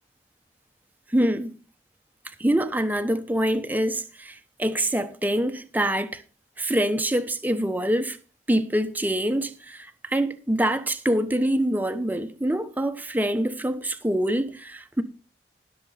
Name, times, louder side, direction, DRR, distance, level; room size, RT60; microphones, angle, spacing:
voice 1, 1.1-1.6 2.4-6.2 6.6-8.2 8.5-15.0, right 1 dB, 10° right, 0.9 m, -25 dB
19.5 x 6.9 x 4.1 m
head